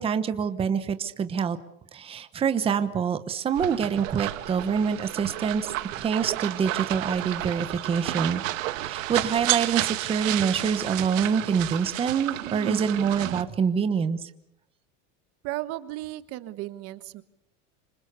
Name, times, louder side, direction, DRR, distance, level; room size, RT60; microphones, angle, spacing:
voice 1, 0.0-1.6 1.9-8.4 8.7-14.2, right 6 dB, 15° right, 10 dB, 1.1 m, -26 dB
sound 1, 3.6-13.4, right 16 dB, 85° right, 1.9 m, -31 dB
voice 2, 15.4-17.2, right 16 dB, 40° right, 13 dB, 1.4 m, -35 dB
27.5 x 26.0 x 6.8 m, 0.77 s
supercardioid pair, 170°, 38 cm